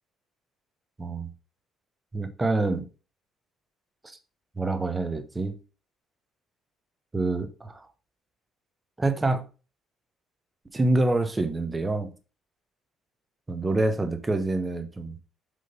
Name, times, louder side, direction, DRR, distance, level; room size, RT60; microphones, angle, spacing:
voice 1, 1.0-1.3 2.1-2.8 4.0-4.2 4.6-5.5 7.1-7.9 9.0-9.4 10.7-12.1 13.5-15.1, right 2 dB, 20° right, 1.2 m, -26 dB
6.8 x 3.8 x 5.2 m
supercardioid pair, 80°, 0 cm